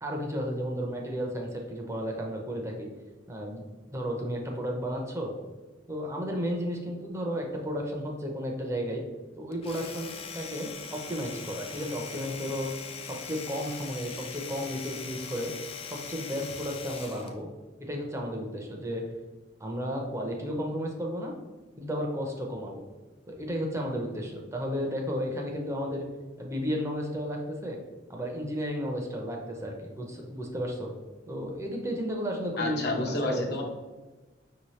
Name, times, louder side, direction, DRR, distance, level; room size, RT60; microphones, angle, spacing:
voice 1, 0.0-2.9 3.3-5.3 5.9-9.0 9.4-12.7 13.0-15.5 15.8-17.5 17.8-19.0 19.6-21.3 21.8-22.8 23.3-26.1 26.4-27.8 28.1-30.9 31.3-33.4, equal, 15° right, 1 dB, 0.6 m, -33 dB
Domestic sounds home sounds, 9.5-17.4, left 6 dB, 30° left, 0.3 m, -41 dB
voice 2, 32.6-33.6, left 2 dB, 60° left, 1 dB, 0.7 m, -30 dB
5.3 x 2.8 x 3.1 m, 1.2 s
head